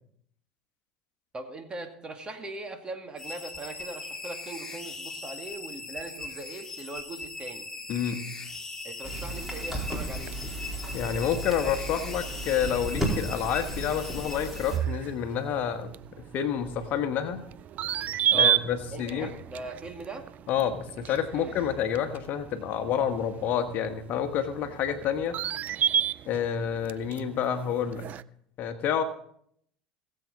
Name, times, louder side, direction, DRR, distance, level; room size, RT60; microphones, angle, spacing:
voice 1, 1.3-7.7 8.8-10.4 18.3-18.6 18.9-20.3 21.3-21.5, right 2 dB, 25° right, 5 dB, 2.2 m, -40 dB
sound 1, 3.2-15.0, left 3 dB, 15° left, 2.0 m, -40 dB
voice 2, 7.9-8.2 10.9-15.9 16.2-17.4 18.3-19.3 20.5-25.4 26.3-28.1 28.6-29.0, left 8 dB, 55° left, 7 dB, 1.3 m, -29 dB
sound 2, 9.0-14.8, right 1 dB, 5° right, 4.1 m, -34 dB
sound 3, 9.6-28.2, right 10 dB, 45° right, 0.4 m, -34 dB
19.5 x 7.8 x 4.1 m, 0.68 s
hypercardioid pair, 75°, 4 cm